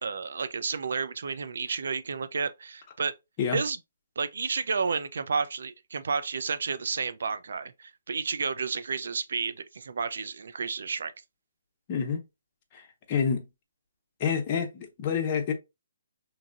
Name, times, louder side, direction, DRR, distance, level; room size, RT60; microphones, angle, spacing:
voice 1, 0.0-3.1 3.5-3.8 4.2-11.1, right 5 dB, 70° right, 0.4 m, -31 dB
voice 2, 11.9-12.2 12.7-13.4 14.2-15.5, left 6 dB, 30° left, 0.7 m, -28 dB
2.9 x 2.6 x 2.5 m
hypercardioid pair, 150°, 0 cm